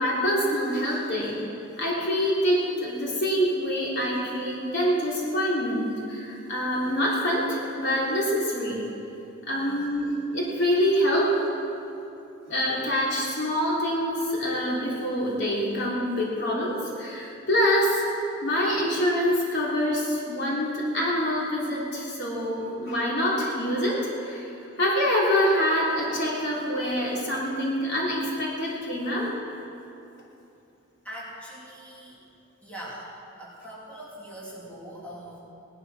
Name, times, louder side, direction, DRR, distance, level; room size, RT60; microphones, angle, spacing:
voice 1, 0.0-1.4 1.8-8.8 9.5-11.3 12.5-18.0 18.4-24.5 24.8-29.3, equal, 60° left, -5 dB, 3.5 m, -25 dB
voice 2, 31.0-32.2 32.6-33.1 33.4-35.4, right 1 dB, 5° left, -7 dB, 3.5 m, -41 dB
19.5 x 12.0 x 6.1 m, 2.8 s
head